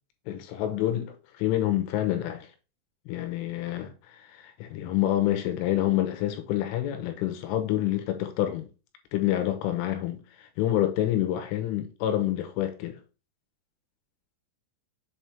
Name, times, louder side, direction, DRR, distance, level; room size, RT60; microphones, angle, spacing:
voice 1, 0.3-2.5 3.1-3.9 4.3-8.7 9.1-13.0, left 13 dB, 85° left, 3.3 m, -27 dB
7.4 x 3.4 x 4.4 m
omnidirectional pair, 5.8 m